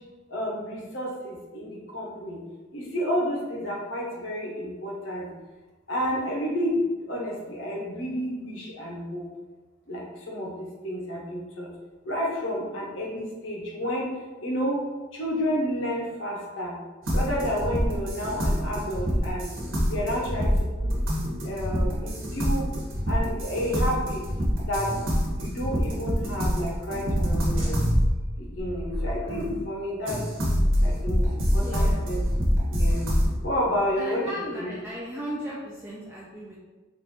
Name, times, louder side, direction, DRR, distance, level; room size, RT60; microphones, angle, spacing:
voice 1, 0.3-2.4 2.7-5.3 5.9-9.3 9.9-11.7 12.0-14.1 14.4-14.8 15.1-16.8 17.1-19.5 19.9-20.5 20.8-20.9 21.4-22.6 23.1-24.2 24.6-24.9 25.4-27.8 28.4-30.2 30.8-31.3 31.5-32.3 32.7-33.1 33.4-34.7, equal, 65° left, -3 dB, 1.0 m, -30 dB
sound 1, 17.1-29.6 30.1-33.3, equal, 70° right, 1.1 m, -26 dB
voice 2, 31.6-32.0 34.0-36.6, equal, 10° right, -6 dB, 0.4 m, -36 dB
3.4 x 2.6 x 4.2 m, 1.3 s
head